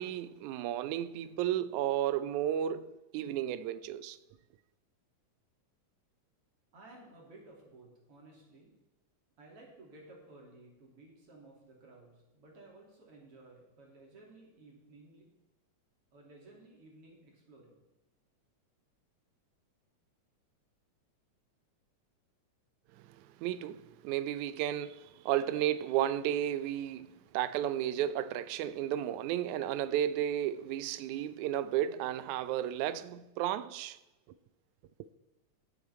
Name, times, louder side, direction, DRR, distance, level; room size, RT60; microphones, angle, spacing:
voice 1, 0.0-4.2 23.4-34.0, right 11 dB, 90° right, 2.0 m, -33 dB
voice 2, 6.7-8.7 9.4-15.3 16.1-17.8, right 2 dB, 50° right, 3.9 m, -56 dB
17.5 x 8.3 x 4.3 m
omnidirectional pair, 3.3 m